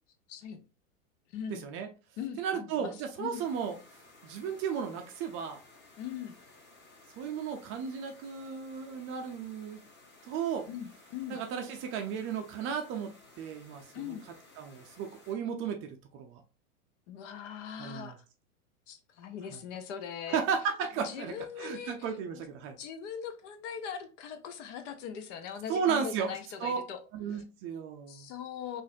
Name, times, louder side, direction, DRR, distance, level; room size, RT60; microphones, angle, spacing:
voice 1, 0.3-0.6 1.3-1.7 2.2-2.9 3.2-3.5 6.0-6.4 10.7-11.4 13.9-14.2 17.1-18.2 18.9-20.4 21.0-22.4 22.8-27.0 27.3-27.4 28.1-28.8, left 8 dB, 55° left, 0.8 m, -41 dB
voice 2, 1.5-1.9 2.4-3.8 4.2-5.6 7.2-9.8 10.3-10.7 11.3-14.2 14.6-16.4 17.8-18.2 19.5-19.6 20.3-22.8 25.7-26.3 26.6-26.8 27.1-28.3, right 7 dB, 30° right, 0.5 m, -34 dB
sound 1, 3.3-15.3, left 2 dB, 25° left, 1.3 m, -57 dB
3.9 x 2.6 x 2.6 m
hypercardioid pair, 120°, 44 cm